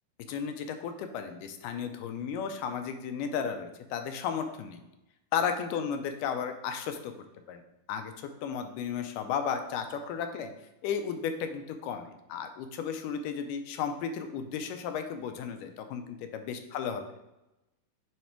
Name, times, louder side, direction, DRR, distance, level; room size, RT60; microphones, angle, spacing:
voice 1, 0.3-4.8 5.3-7.1 7.5-7.6 7.9-8.1 8.4-10.5 10.8-17.0, left 7 dB, 85° left, 7 dB, 2.2 m, -34 dB
9.1 x 3.2 x 4.4 m, 0.94 s
omnidirectional pair, 3.7 m